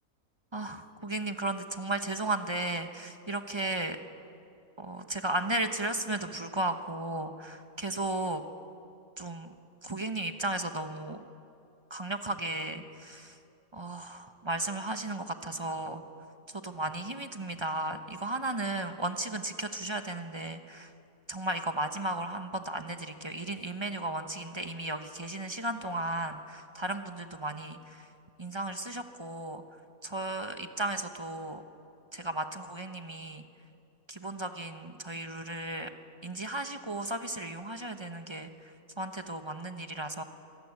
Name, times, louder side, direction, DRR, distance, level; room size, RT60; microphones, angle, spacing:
voice 1, 0.5-4.0 4.8-8.4 9.2-9.5 9.8-11.2 11.9-13.4 13.7-16.0 16.5-20.9 21.3-28.1 28.4-29.6 30.0-31.6 32.1-33.4 34.1-35.9 36.2-38.5 39.0-40.2, right 2 dB, 20° right, 7 dB, 1.0 m, -35 dB
26.0 x 15.5 x 9.7 m, 2.6 s
omnidirectional pair, 1.5 m